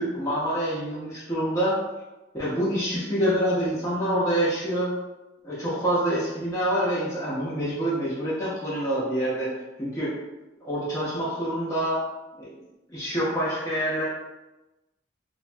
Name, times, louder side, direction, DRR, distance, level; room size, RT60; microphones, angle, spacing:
voice 1, 0.0-1.8 2.3-4.9 5.4-9.5 9.8-10.1 10.6-12.0 12.4-12.5 12.9-14.0, right 1 dB, 15° left, -9 dB, 0.6 m, -26 dB
2.9 x 2.1 x 2.6 m, 1.0 s
head